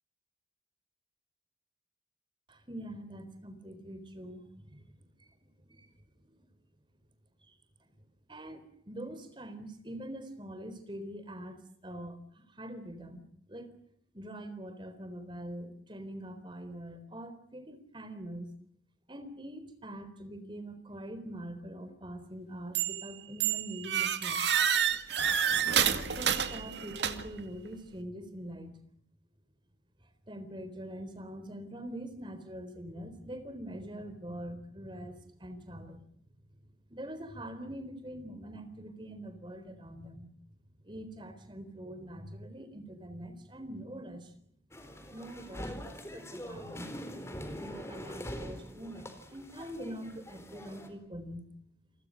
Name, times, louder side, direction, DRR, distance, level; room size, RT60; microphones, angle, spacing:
voice 1, 2.5-5.3 5.7-5.9 6.4-6.5 7.5-7.6 8.3-13.2 13.5-13.7 14.1-18.5 19.1-24.5 25.6-28.8 30.3-36.1 36.9-40.3 40.8-44.3 44.9-46.9 47.6-51.5, right 1 dB, 25° right, 10 dB, 4.0 m, -44 dB
sound 1, 22.8-23.1 23.4-27.4, right 8 dB, 80° right, 2.1 m, -29 dB
sound 2, 44.7-50.9, equal, 15° left, 4.2 m, -43 dB
29.0 x 24.0 x 6.5 m, 0.65 s
head